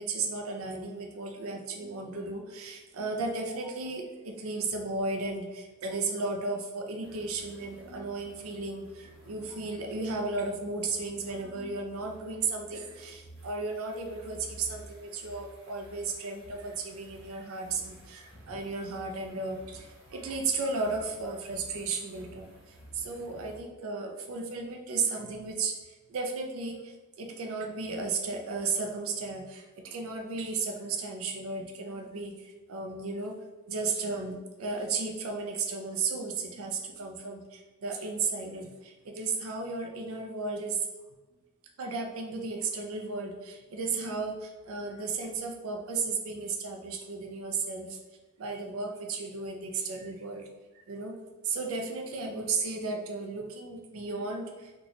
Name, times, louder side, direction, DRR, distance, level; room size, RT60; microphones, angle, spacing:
voice 1, 0.0-25.8 26.1-33.4 33.7-40.9 41.8-48.0 48.4-50.5 50.9-51.2 51.4-54.9, right 4 dB, 75° right, 3 dB, 0.5 m, -34 dB
sound 1, 7.0-23.6, right 1 dB, 55° right, 1.0 m, -53 dB
2.9 x 2.3 x 3.9 m, 1.2 s
head